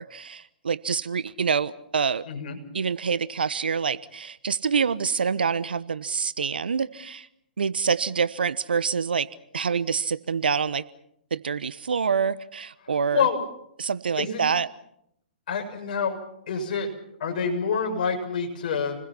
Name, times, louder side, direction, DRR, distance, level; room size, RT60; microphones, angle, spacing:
voice 1, 0.0-2.2 2.7-7.3 7.6-9.3 9.5-10.8 11.3-13.3 13.8-14.7, right 6 dB, 70° right, 16 dB, 1.1 m, -26 dB
voice 2, 2.3-2.6 13.1-13.4 14.2-14.4 15.5-16.2 16.5-16.9 17.2-19.0, left 6 dB, 50° left, 3 dB, 6.9 m, -27 dB
29.5 x 21.0 x 5.8 m, 0.74 s
figure-of-eight pair, 125°, 5 cm